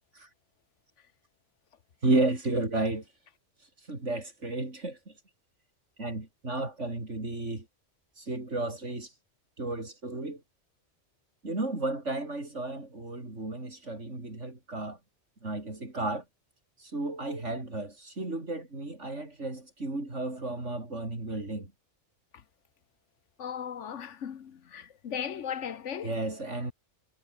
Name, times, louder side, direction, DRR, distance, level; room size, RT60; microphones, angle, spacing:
voice 1, 2.0-3.1 3.9-5.1 6.0-7.7 8.2-9.1 9.6-10.4 11.4-15.0 15.4-16.2 16.8-21.7 26.0-26.7, right 2 dB, 85° right, 5.4 m, -33 dB
voice 2, 23.4-26.1, left 8 dB, 85° left, 1.4 m, -37 dB
omnidirectional pair, 1.2 m